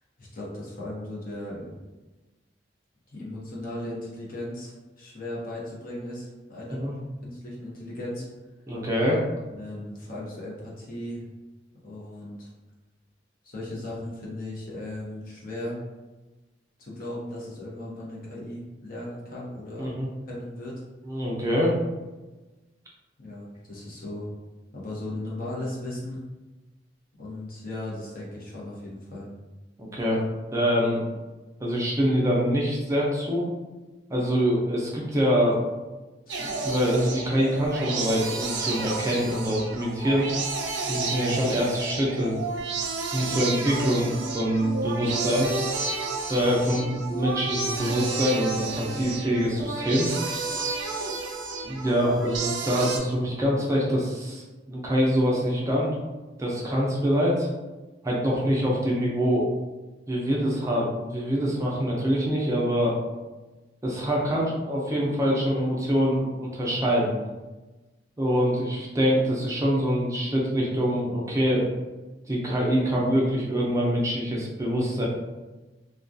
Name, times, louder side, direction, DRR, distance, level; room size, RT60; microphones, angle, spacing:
voice 1, 0.2-1.7 3.1-6.8 7.2-8.3 9.5-11.2 11.8-12.5 13.4-15.8 16.8-19.9 20.3-20.8 23.2-24.3 24.7-26.2 27.2-29.3 36.3-36.5, left 1 dB, 50° left, -5 dB, 0.7 m, -37 dB
voice 2, 8.7-9.2 19.8-20.1 21.0-21.8 29.8-30.2 30.5-31.0 31.6-33.5 34.1-35.6 36.4-40.3 40.9-42.4 43.1-45.5 46.3-50.1 50.5-50.7 51.6-55.9 56.4-57.5 58.0-59.5 60.1-63.0 63.8-67.1 68.2-71.7 72.3-75.0, equal, 15° right, -4 dB, 0.4 m, -25 dB
sound 1, 36.3-53.0, right 3 dB, 75° right, 0.4 m, -31 dB
2.2 x 2.2 x 2.5 m, 1.2 s
head